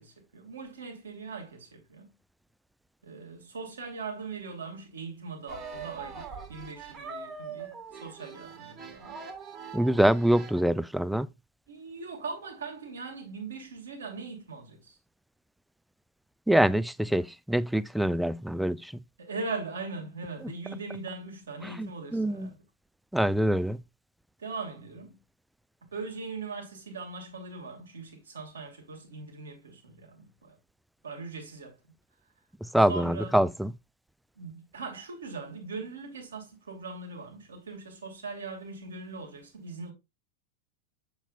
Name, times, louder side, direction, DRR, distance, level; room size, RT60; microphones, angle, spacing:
voice 1, 0.0-2.1 3.0-9.3 11.7-15.0 19.2-22.6 24.4-25.2 25.9-30.6 31.0-31.8 32.8-33.4 34.3-39.9, right 4 dB, 70° right, 2.7 m, -40 dB
sound 1, 5.5-10.6, right 5 dB, 30° right, 1.6 m, -42 dB
voice 2, 9.7-11.3 16.5-18.9 21.6-22.5 23.1-23.8 32.6-33.7, right 1 dB, ahead, 0.3 m, -25 dB
7.1 x 6.9 x 2.6 m
figure-of-eight pair, 90°, 0 cm